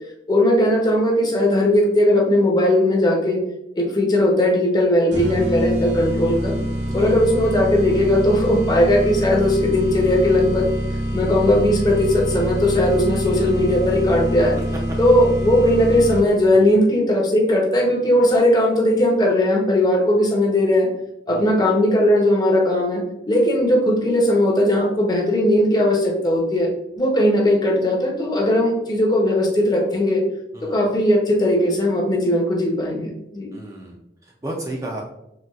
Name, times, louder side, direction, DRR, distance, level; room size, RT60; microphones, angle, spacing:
voice 1, 0.3-3.4 3.7-6.6 6.9-10.7 11.1-14.6 15.0-20.9 21.3-30.2 30.6-33.5, left 1 dB, 20° left, 0 dB, 0.6 m, -18 dB
sound 1, 5.1-16.5, equal, 75° right, 1.0 m, -25 dB
voice 2, 33.5-34.0 34.4-35.0, right 1 dB, 20° right, -1 dB, 0.3 m, -32 dB
3.9 x 2.3 x 2.3 m, 0.83 s
head